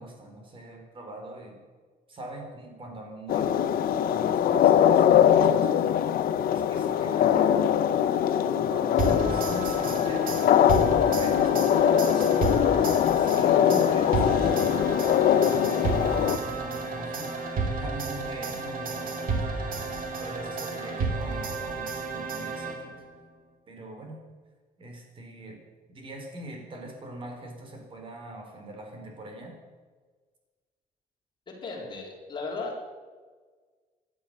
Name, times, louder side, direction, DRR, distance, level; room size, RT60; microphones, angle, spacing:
voice 1, 0.0-1.6 2.1-3.5 4.1-5.8 6.5-7.7 8.4-10.8 11.1-11.7 13.1-23.0 23.7-24.2 24.8-25.6 25.9-29.5, right 1 dB, 35° right, 2 dB, 3.9 m, -42 dB
sound 1, 3.3-16.4, left 9 dB, 70° left, 0.8 m, -22 dB
sound 2, 9.0-23.1, right 3 dB, 65° right, 2.4 m, -32 dB
voice 2, 12.0-12.5 31.5-32.7, left 3 dB, 30° left, -1 dB, 3.8 m, -37 dB
16.0 x 11.5 x 6.5 m, 1.5 s
cardioid pair, 170°, 16 cm